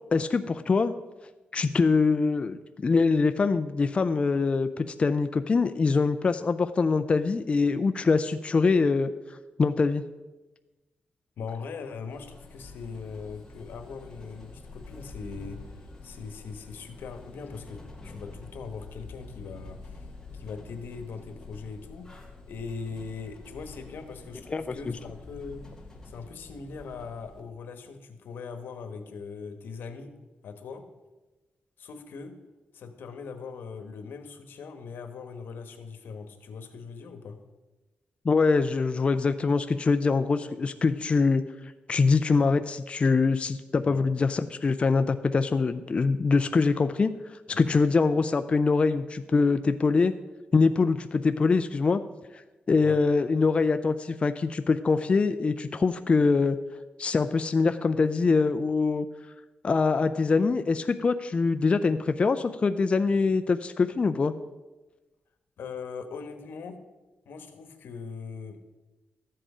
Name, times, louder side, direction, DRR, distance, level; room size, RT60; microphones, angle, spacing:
voice 1, 0.1-0.9 1.5-9.1 9.6-10.0 24.5-24.7 38.2-41.4 41.9-47.2 47.6-50.1 50.5-52.0 52.7-56.6 57.0-59.1 59.6-64.3, left 4 dB, 35° left, 9 dB, 0.4 m, -24 dB
voice 2, 11.4-20.1 20.3-22.1 22.5-25.6 26.0-30.1 30.4-30.8 31.8-32.3 32.7-37.4 43.8-44.0 47.5-47.8 52.8-53.0 65.6-66.8 67.2-68.6, left 5 dB, 90° left, 7 dB, 1.2 m, -40 dB
sound 1, 12.1-27.4, left 3 dB, 15° left, 2.1 m, -46 dB
13.0 x 7.7 x 4.9 m, 1.1 s
wide cardioid pair, 120°, 3 cm